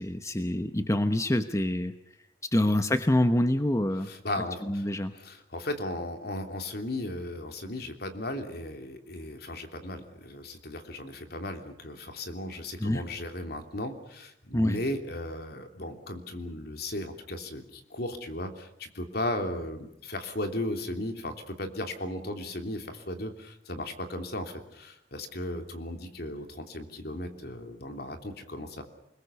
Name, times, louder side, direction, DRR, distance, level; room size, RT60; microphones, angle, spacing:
voice 1, 0.0-1.9 2.5-4.1 4.7-5.1 12.8-13.0 14.5-14.8, left 1 dB, 20° left, 9 dB, 1.0 m, -26 dB
voice 2, 4.0-4.9 5.1-28.8, left 1 dB, 65° left, 6 dB, 3.2 m, -36 dB
28.5 x 21.0 x 7.0 m, 0.77 s
head